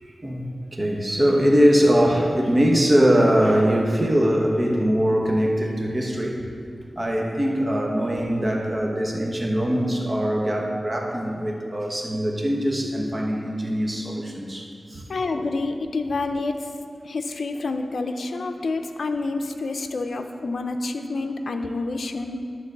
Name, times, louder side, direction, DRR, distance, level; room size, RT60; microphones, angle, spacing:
voice 1, 0.0-6.5 6.8-15.0 15.3-15.5, equal, 30° right, 0 dB, 1.1 m, -22 dB
voice 2, 15.1-16.7 17.0-22.4, left 3 dB, 75° left, 6 dB, 0.5 m, -28 dB
10.5 x 3.9 x 6.7 m, 2.3 s
wide cardioid pair, 95°, 0 cm